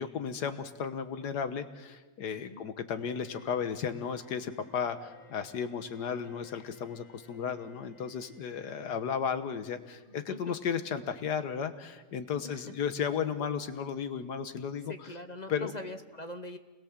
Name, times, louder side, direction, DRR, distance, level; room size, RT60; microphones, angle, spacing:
voice 1, 0.0-15.1 15.5-15.7, left 7 dB, 80° left, 10 dB, 1.7 m, -34 dB
Bowed string instrument, 2.9-9.8, left 3 dB, 50° left, 2.9 m, -58 dB
voice 2, 14.9-16.6, left 2 dB, 35° left, 8 dB, 0.8 m, -42 dB
28.5 x 21.0 x 7.4 m, 1.2 s
omnidirectional pair, 1.7 m